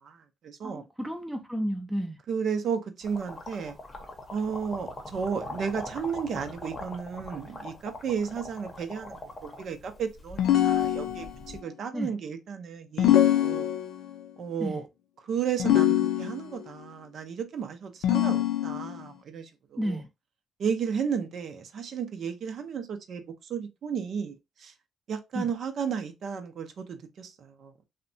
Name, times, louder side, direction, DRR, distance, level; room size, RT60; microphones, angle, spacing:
voice 1, 0.0-0.8 2.3-3.8 4.3-13.7 14.4-14.9 15.2-20.0 20.6-24.7 25.1-27.7, right 6 dB, 60° right, 0.5 m, -33 dB
voice 2, 0.6-2.2 11.9-12.1 14.6-14.8 19.8-20.1 25.4-25.5, equal, 5° right, 0.4 m, -32 dB
sound 1, 3.0-11.6, left 2 dB, 35° left, 0.7 m, -42 dB
sound 2, 10.4-11.5 13.0-14.2 15.6-16.6 18.0-19.0, left 12 dB, 80° left, 0.4 m, -23 dB
2.7 x 2.1 x 2.6 m
cardioid pair, 90°, 0 cm